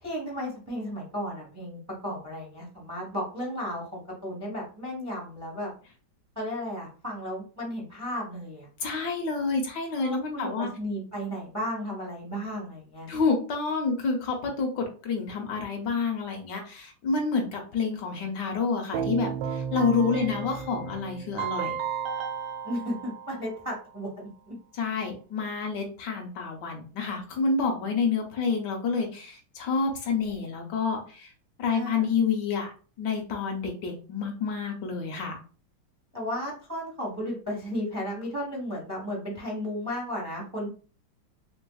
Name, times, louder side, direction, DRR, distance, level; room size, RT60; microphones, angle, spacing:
voice 1, 0.0-5.7 6.4-8.7 10.0-13.1 20.1-20.3 22.6-24.5 31.7-32.1 36.1-40.7, equal, 25° right, -2 dB, 0.3 m, -34 dB
voice 2, 8.8-10.7 13.1-21.8 24.8-31.3 31.6-32.7 33.0-35.4, left 5 dB, 70° left, 3 dB, 1.2 m, -28 dB
Keyboard (musical), 18.9-23.9, right 8 dB, 90° right, 1.4 m, -33 dB
3.3 x 3.3 x 2.3 m, 0.38 s
omnidirectional pair, 2.1 m